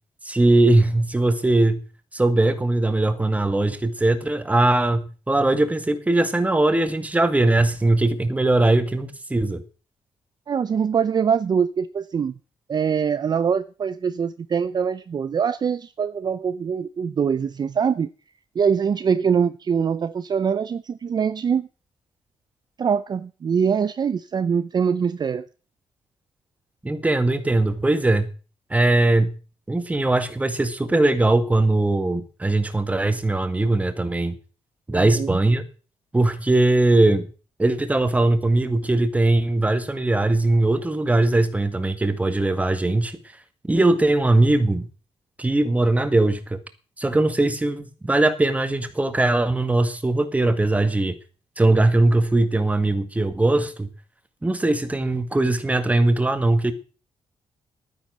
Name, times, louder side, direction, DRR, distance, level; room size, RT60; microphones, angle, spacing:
voice 1, 0.2-1.8 2.1-9.6 26.8-28.3 28.7-29.3 29.7-34.4 34.9-35.6 36.1-37.3 37.6-43.2 43.7-44.9 45.4-46.6 47.0-51.2 51.6-53.9 54.4-56.7, right 2 dB, 15° right, 1.8 m, -20 dB
voice 2, 10.5-12.3 12.7-18.1 18.5-21.7 22.8-25.5 34.9-35.4, right 7 dB, 40° right, 0.6 m, -23 dB
12.0 x 9.8 x 6.3 m
cardioid pair, 105°, 11 cm